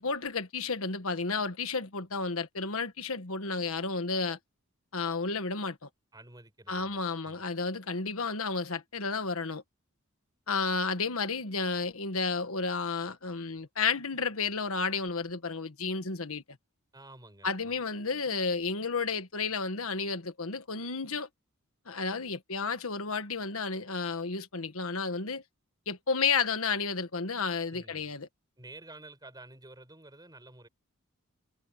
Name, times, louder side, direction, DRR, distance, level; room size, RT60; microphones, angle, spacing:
voice 1, 0.0-4.4 4.9-5.9 6.7-9.6 10.5-16.4 17.4-21.3 21.9-25.4 25.9-28.3, left 4 dB, 70° left, 1.5 m, -32 dB
voice 2, 6.1-7.4 16.9-17.8 27.7-28.1 28.6-30.7, right 2 dB, 20° right, 7.2 m, -51 dB
head